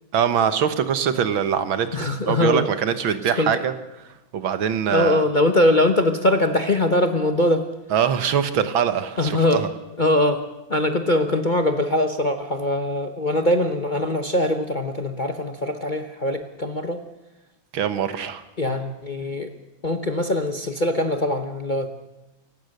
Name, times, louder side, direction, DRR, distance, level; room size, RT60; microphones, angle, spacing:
voice 1, 0.1-1.9 2.3-3.7 4.3-5.2 7.9-9.7 17.7-18.4, right 8 dB, 80° right, 11 dB, 2.0 m, -23 dB
voice 2, 1.9-2.7 3.4-3.5 4.9-7.7 9.2-9.7 10.0-10.4 10.7-17.0 18.6-19.5 19.8-21.9, left 1 dB, 30° left, 6 dB, 1.0 m, -22 dB
28.5 x 16.0 x 6.7 m, 1.0 s
omnidirectional pair, 2.2 m